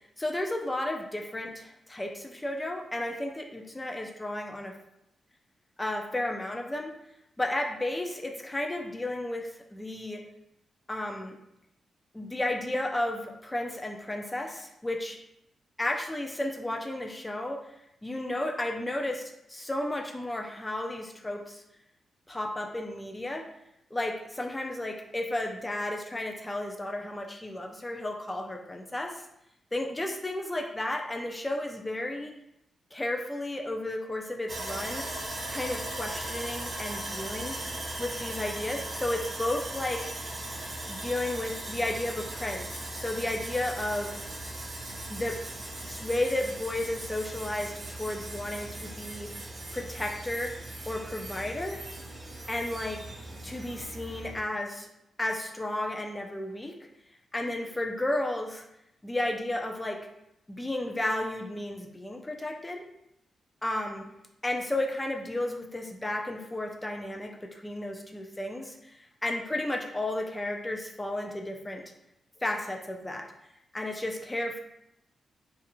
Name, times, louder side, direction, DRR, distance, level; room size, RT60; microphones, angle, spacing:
voice 1, 0.2-4.7 5.8-6.9 7.4-10.2 10.9-11.4 12.1-15.2 15.8-17.6 18.0-21.6 22.3-23.4 23.9-29.3 29.7-32.3 32.9-35.0 35.5-37.5 38.0-40.2 40.9-44.3 45.1-45.3 45.8-50.5 50.9-51.8 52.5-53.0 53.4-54.9 55.2-56.7 57.3-58.7 59.0-60.0 60.5-62.8 63.6-64.0 64.4-69.0 69.2-71.8 72.4-73.2 73.7-74.6, left 1 dB, 15° left, 2 dB, 0.3 m, -33 dB
Sawing, 34.5-54.4, right 1 dB, 40° right, 0.7 m, -38 dB
2.4 x 2.4 x 2.9 m, 0.82 s
cardioid pair, 90°, 0 cm